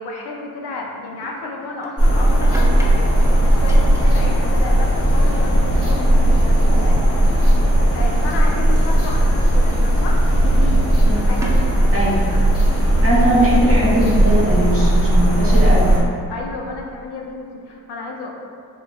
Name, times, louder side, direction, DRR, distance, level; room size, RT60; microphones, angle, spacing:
voice 1, 0.0-7.4 7.9-10.9 11.3-11.9 16.3-18.3, left 3 dB, 70° left, -1 dB, 0.5 m, -32 dB
sound 1, 1.2-4.2 4.5-4.9 5.2-7.8 8.3-8.7 9.8-10.0 10.4-12.6, right 1 dB, 10° right, 0.4 m, -38 dB
sound 2, 2.0-16.0, right 1 dB, 35° left, 0.9 m, -16 dB
voice 2, 13.0-16.0, right 1 dB, 35° right, -6 dB, 0.9 m, -19 dB
3.0 x 2.1 x 2.3 m, 2.2 s
supercardioid pair, 50°, 40 cm